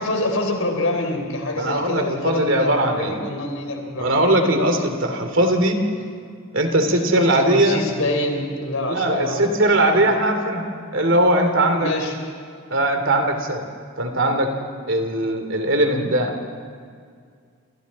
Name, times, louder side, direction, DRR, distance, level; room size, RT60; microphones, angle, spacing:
voice 1, 0.0-4.1 6.8-9.5 9.8-10.1 11.8-12.2, left 1 dB, 70° left, 3 dB, 3.9 m, -26 dB
voice 2, 1.6-3.2 4.0-5.8 6.5-7.8 8.9-11.9 12.7-13.6 14.0-14.5 14.9-16.4, right 1 dB, 55° right, 5 dB, 2.8 m, -20 dB
28.5 x 28.5 x 4.2 m, 2.1 s
head